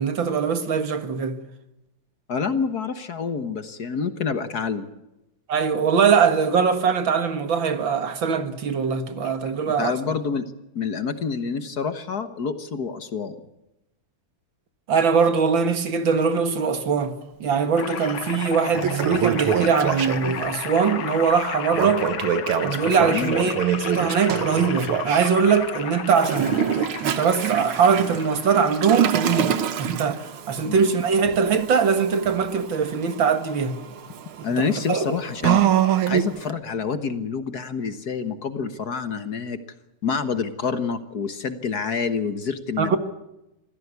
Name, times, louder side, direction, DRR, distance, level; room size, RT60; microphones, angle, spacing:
voice 1, 0.0-1.4 5.5-10.0 14.9-17.1 17.4-22.1 22.6-23.5 23.8-33.8 34.5-35.2 42.8-43.0, right 6 dB, 70° right, 2.4 m, -22 dB
voice 2, 2.3-4.9 9.2-9.3 9.8-13.3 23.1-23.4 30.6-30.8 34.4-35.6 36.1-39.6 40.0-43.0, left 5 dB, 50° left, 1.7 m, -27 dB
sound 1, 17.7-29.1, left 8 dB, 70° left, 2.2 m, -33 dB
Toilet flush, 18.0-18.1 18.6-20.5 21.7-25.3 26.2-36.5, right 9 dB, 85° right, 2.0 m, -26 dB
25.0 x 16.0 x 8.3 m
omnidirectional pair, 2.2 m